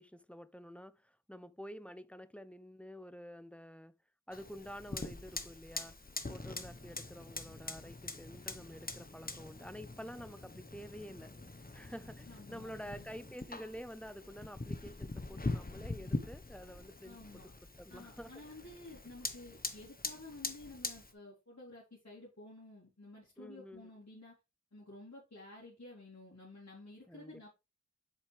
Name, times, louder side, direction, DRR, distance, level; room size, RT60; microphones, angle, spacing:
voice 1, 0.0-3.9 4.3-6.0 6.3-11.3 11.7-18.3 23.4-23.9 27.1-27.5, equal, 5° left, 0.6 m, -49 dB
Fire, 4.3-21.1, left 2 dB, 30° left, 1.1 m, -43 dB
voice 2, 12.2-13.1 17.0-17.5 17.9-24.3 24.7-27.5, left 2 dB, 60° left, 2.9 m, -52 dB
7.4 x 5.4 x 3.3 m
wide cardioid pair, 55°, 29 cm